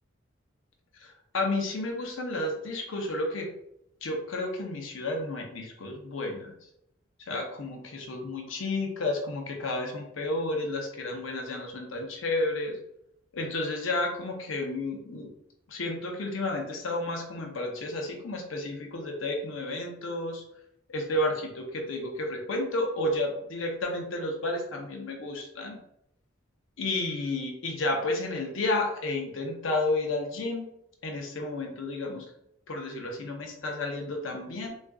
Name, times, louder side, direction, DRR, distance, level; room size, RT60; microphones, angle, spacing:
voice 1, 1.0-3.5 4.0-6.5 7.2-12.8 13.3-15.3 15.7-20.4 20.9-25.8 26.8-30.7 31.0-32.2 32.7-34.8, left 2 dB, 85° left, 1 dB, 0.6 m, -31 dB
3.6 x 2.4 x 2.3 m, 0.77 s
head